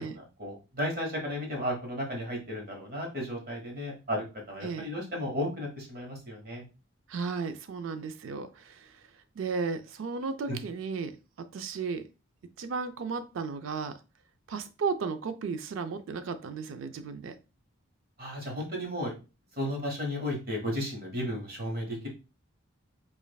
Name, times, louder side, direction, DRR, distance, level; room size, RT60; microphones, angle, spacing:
voice 1, 0.0-6.6 10.5-10.6 18.2-19.1 19.6-22.1, equal, 45° right, 0 dB, 1.2 m, -34 dB
voice 2, 7.1-9.0 9.4-12.1 12.6-14.0 14.5-17.4, right 5 dB, 70° right, 10 dB, 0.4 m, -34 dB
5.1 x 2.5 x 2.3 m, 0.30 s
head